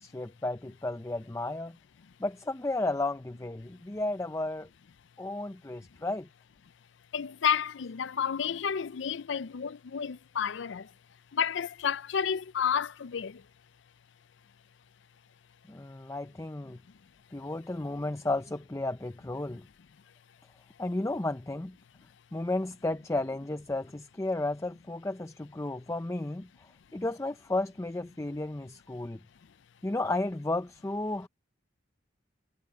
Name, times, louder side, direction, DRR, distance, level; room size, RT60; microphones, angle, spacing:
voice 1, 0.0-1.8 2.2-4.7 5.2-6.3 15.7-16.8 17.3-19.6 20.8-21.8 22.3-26.5 26.9-29.2 29.8-31.3, left 2 dB, 15° left, 0.5 m, -33 dB
voice 2, 7.1-10.9 11.3-13.4, left 7 dB, 70° left, 0.5 m, -31 dB
head